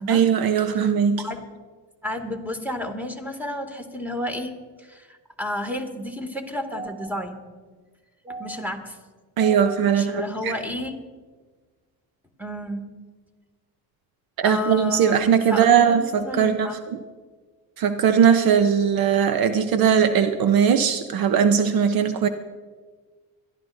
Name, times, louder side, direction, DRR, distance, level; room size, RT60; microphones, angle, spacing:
voice 1, 0.1-1.3 9.4-10.5 14.4-17.0 17.8-22.3, right 7 dB, 65° right, 9 dB, 0.8 m, -19 dB
voice 2, 1.2-1.5 2.0-7.4 8.2-9.0 9.4-10.9 12.4-12.9 14.4-16.8, equal, 5° right, 5 dB, 2.2 m, -32 dB
23.5 x 13.0 x 2.7 m, 1.4 s
supercardioid pair, 80°, 39 cm